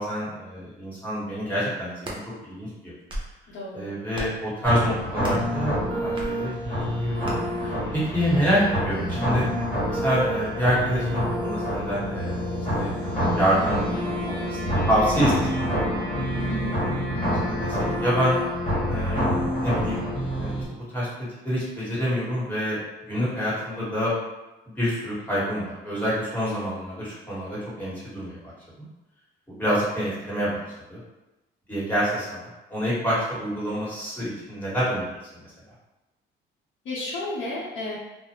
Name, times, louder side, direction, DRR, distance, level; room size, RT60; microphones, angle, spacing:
voice 1, 0.0-2.2 2.4-2.9 3.7-7.2 7.6-9.5 9.9-12.4 12.7-12.9 13.3-13.8 14.2-14.6 14.9-16.1 17.5-18.4 18.9-19.3 19.6-20.0 20.3-20.6 20.9-21.1 21.4-22.8 23.1-24.1 24.8-28.4 29.5-30.6 30.9-31.0 31.7-35.5, equal, 10° left, -9 dB, 1.3 m, -27 dB
sound 1, 1.8-2.2 2.9-3.4 4.1-4.5 5.2-5.5 6.2-6.3 7.2-7.4, right 1 dB, 25° right, 0.6 m, -35 dB
voice 2, 3.5-3.9 8.3-8.5 16.4-16.9 36.8-38.0, left 2 dB, 85° left, -9 dB, 0.8 m, -33 dB
sound 2, 4.6-20.6, equal, 30° left, 1.2 m, -27 dB
2.4 x 2.0 x 2.9 m, 1.0 s
cardioid pair, 90°, 20 cm